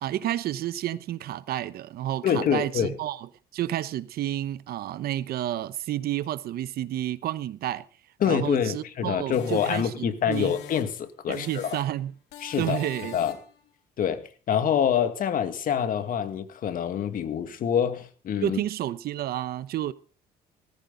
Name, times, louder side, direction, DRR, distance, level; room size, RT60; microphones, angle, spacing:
voice 1, 0.0-3.3 3.5-7.8 8.2-10.5 11.3-12.1 12.6-13.2 18.4-19.9, right 13 dB, 65° right, 1.0 m, -30 dB
voice 2, 2.2-3.0 8.2-11.8 12.4-12.8 13.1-13.4 14.0-18.6, left 8 dB, 55° left, 2.2 m, -26 dB
sound 1, 9.3-11.0 11.3-12.0 12.3-13.6, left 9 dB, 90° left, 3.5 m, -43 dB
18.5 x 15.0 x 4.0 m
cardioid pair, 110°, 17 cm